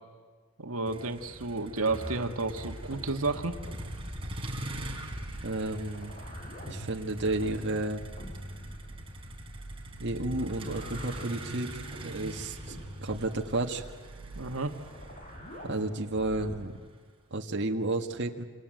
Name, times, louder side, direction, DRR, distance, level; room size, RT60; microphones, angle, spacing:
voice 1, 0.6-3.5 14.3-14.8, right 3 dB, 75° right, 5 dB, 1.7 m, -31 dB
Motor vehicle (road), 0.9-17.0, right 1 dB, 25° right, 4.3 m, -43 dB
sound 1, 1.9-16.7, equal, 35° left, 6.8 m, -44 dB
voice 2, 5.4-6.1 6.7-8.0 10.0-12.8 13.0-13.8 15.6-16.8 17.3-18.4, right 2 dB, 55° right, 2 dB, 1.7 m, -32 dB
28.0 x 27.0 x 7.7 m, 1.5 s
head